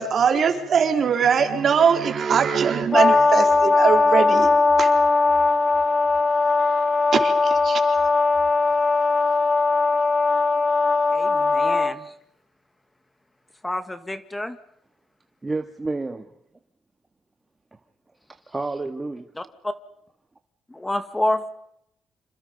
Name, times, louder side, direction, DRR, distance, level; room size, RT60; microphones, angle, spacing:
voice 1, 0.0-4.5 4.8-4.9 7.1-7.8, right 7 dB, 55° right, 6 dB, 4.1 m, -21 dB
Brass instrument, 2.9-11.9, left 3 dB, 30° left, 2.2 m, -19 dB
voice 2, 11.1-12.1 13.6-14.6 19.4-19.7 20.7-21.4, left 1 dB, 15° left, 10 dB, 2.1 m, -28 dB
voice 3, 15.4-16.3 17.7-17.8 18.5-19.3, right 3 dB, 20° right, 6 dB, 1.8 m, -30 dB
29.0 x 27.5 x 5.4 m, 0.75 s
cardioid pair, 90°, 0 cm